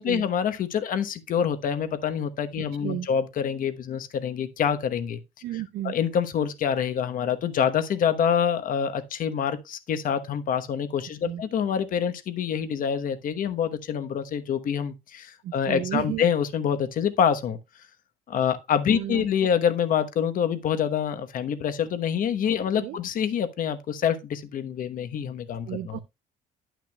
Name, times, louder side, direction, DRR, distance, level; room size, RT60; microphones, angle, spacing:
voice 1, 0.0-5.2 5.8-17.6 18.3-26.0, left 8 dB, 55° left, 1.1 m, -26 dB
voice 2, 2.6-3.1 5.4-6.0 11.2-11.4 15.4-16.2 18.9-19.5 22.7-23.0 25.7-26.0, right 13 dB, 70° right, 0.6 m, -33 dB
10.0 x 9.2 x 2.3 m
cardioid pair, 110°, 17 cm